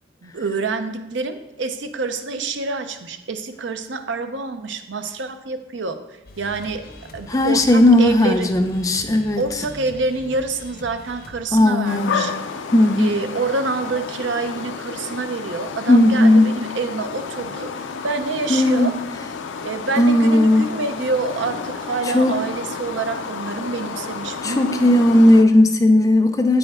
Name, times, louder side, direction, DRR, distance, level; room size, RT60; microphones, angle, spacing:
voice 1, 0.2-6.9 7.1-8.6 9.4-12.3 13.0-19.0 19.6-25.0, right 3 dB, 80° right, 8 dB, 0.6 m, -27 dB
sound 1, 6.3-11.4, left 2 dB, 50° left, 0.7 m, -41 dB
voice 2, 7.3-9.4 11.5-12.2 12.7-13.2 15.9-16.5 18.5-18.9 20.0-20.6 22.1-22.4 24.4-26.6, left 1 dB, 20° left, 6 dB, 0.4 m, -15 dB
sound 2, 11.8-25.4, left 5 dB, 90° left, 0.5 m, -31 dB
8.5 x 5.1 x 3.6 m, 1.0 s
head